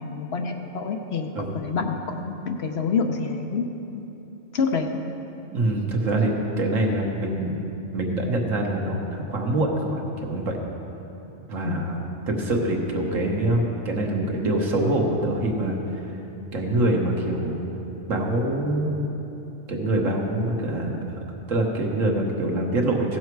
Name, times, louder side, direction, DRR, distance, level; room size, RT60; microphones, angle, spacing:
voice 1, 0.0-3.7 4.5-4.9 11.6-11.9, left 5 dB, 60° left, 4 dB, 0.9 m, -27 dB
voice 2, 5.5-7.7 7.9-10.6 11.5-15.8 16.5-17.6 18.1-19.0 19.7-21.0 21.5-23.2, right 1 dB, 85° right, 1 dB, 1.6 m, -25 dB
15.5 x 7.2 x 4.6 m, 3.0 s
omnidirectional pair, 1.3 m